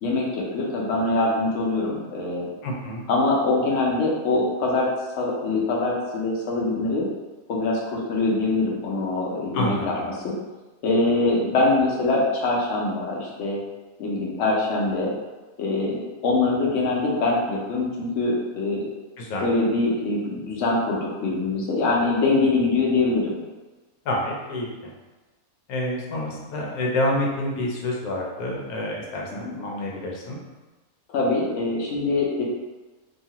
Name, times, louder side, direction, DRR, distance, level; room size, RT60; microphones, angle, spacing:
voice 1, 0.5-2.5 3.1-4.9 5.2-7.1 7.5-9.9 10.2-10.3 10.8-13.6 14.0-15.1 15.6-18.8 19.4-23.4 29.4-29.5 31.1-32.4, left 2 dB, 65° left, -3 dB, 0.9 m, -23 dB
voice 2, 2.6-3.0 9.5-10.1 19.2-19.5 24.1-24.9 25.7-30.4, left 1 dB, 90° left, -2 dB, 1.1 m, -28 dB
2.7 x 2.4 x 2.8 m, 1.2 s
omnidirectional pair, 1.6 m